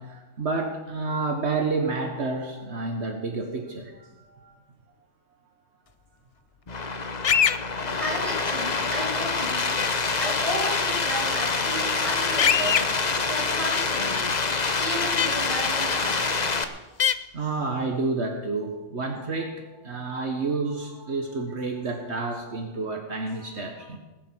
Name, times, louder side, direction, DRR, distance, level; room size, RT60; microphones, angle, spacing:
voice 1, 0.0-4.5 17.1-24.0, right 3 dB, 65° right, 3 dB, 1.7 m, -30 dB
sound 1, 6.7-16.6, left 4 dB, 40° left, 1.0 m, -26 dB
sound 2, 7.2-7.6 9.8-9.9 12.4-12.8 15.2-15.3 17.0-17.1, left 7 dB, 70° left, 0.3 m, -21 dB
voice 2, 8.0-9.7 10.2-12.8 13.3-14.2 14.8-16.2, equal, ahead, -4 dB, 6.1 m, -33 dB
19.5 x 6.9 x 7.9 m, 1.1 s
omnidirectional pair, 1.2 m